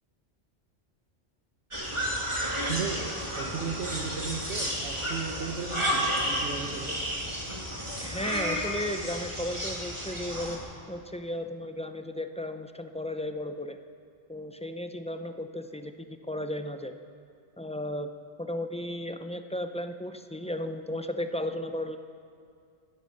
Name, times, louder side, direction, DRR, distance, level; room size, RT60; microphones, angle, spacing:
sound 1, 1.7-10.6, equal, 25° right, 2.6 m, -32 dB
voice 1, 2.6-7.0, right 5 dB, 70° right, 1 dB, 1.3 m, -36 dB
voice 2, 8.0-10.6 10.9-13.8 14.3-15.9 16.3-17.0 17.6-18.1 18.4-22.0, left 1 dB, 10° left, 8 dB, 0.3 m, -34 dB
17.0 x 12.5 x 6.5 m, 2.3 s
omnidirectional pair, 1.1 m